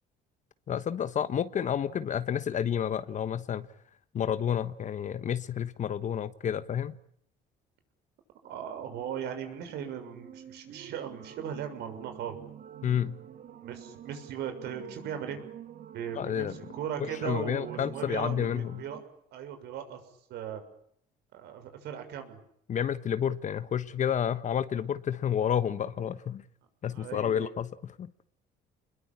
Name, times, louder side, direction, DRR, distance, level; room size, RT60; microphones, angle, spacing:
voice 1, 0.7-3.7 4.1-7.0 12.8-13.2 16.1-16.5 17.0-18.8 22.7-26.4 26.8-28.1, left 9 dB, 45° left, 13 dB, 1.3 m, -30 dB
sound 1, 8.4-19.0, right 9 dB, 55° right, 2.4 m, -47 dB
voice 2, 8.4-12.4 13.6-15.4 15.9-19.0 19.3-20.0 20.3-20.6 21.3-22.4 26.9-27.6, right 8 dB, 80° right, 7 dB, 6.7 m, -38 dB
29.0 x 21.5 x 8.9 m, 0.70 s
cardioid pair, 110°, 17 cm